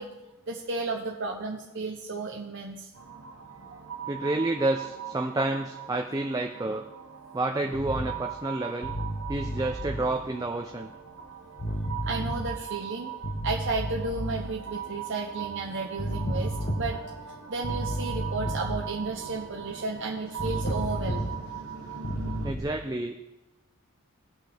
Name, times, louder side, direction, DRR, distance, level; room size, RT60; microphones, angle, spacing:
voice 1, 0.0-2.9 12.0-13.1 13.4-17.0 17.5-21.4, right 3 dB, 55° right, 1 dB, 0.7 m, -33 dB
sound 1, 2.9-22.5, right 9 dB, 70° right, 1.1 m, -40 dB
voice 2, 4.1-6.8 7.3-8.9 9.3-10.9 22.4-23.2, right 2 dB, 15° right, 4 dB, 0.4 m, -29 dB
sound 2, 7.7-8.2 8.8-10.1 11.6-12.6 13.2-14.5 16.0-17.2 17.6-18.9 20.4-21.6 22.0-22.6, equal, 35° left, 1.4 m, -32 dB
17.5 x 5.9 x 3.4 m, 1.0 s
head